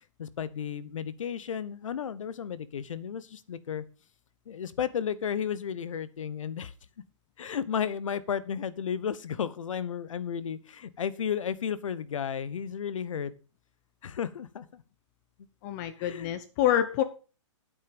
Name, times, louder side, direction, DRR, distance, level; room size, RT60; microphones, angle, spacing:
voice 1, 0.2-3.8 4.5-6.7 7.4-13.3 14.0-14.8 16.0-16.3, left 8 dB, 80° left, 17 dB, 1.1 m, -33 dB
voice 2, 15.6-17.0, left 11 dB, 35° left, 12 dB, 0.8 m, -27 dB
8.9 x 8.6 x 5.3 m, 0.36 s
hypercardioid pair, 150°, 16 cm